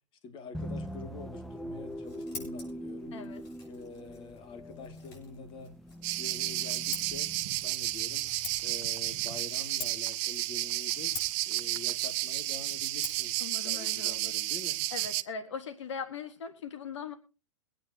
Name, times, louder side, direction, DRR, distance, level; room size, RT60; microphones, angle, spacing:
voice 1, 0.2-3.2 3.6-5.7 6.1-8.3 8.6-11.2 11.5-13.4 13.6-14.8, left 4 dB, 35° left, 2.2 m, -46 dB
sound 1, 0.5-9.3, equal, ahead, 0.5 m, -43 dB
Scissors, 1.7-15.3, left 4 dB, 55° left, 6.5 m, -48 dB
voice 2, 3.1-3.4 13.4-14.3 14.9-17.1, left 6 dB, 70° left, 1.6 m, -40 dB
sound 2, 6.0-15.2, right 18 dB, 45° right, 0.7 m, -32 dB
23.0 x 9.3 x 2.8 m
hypercardioid pair, 110°, 16 cm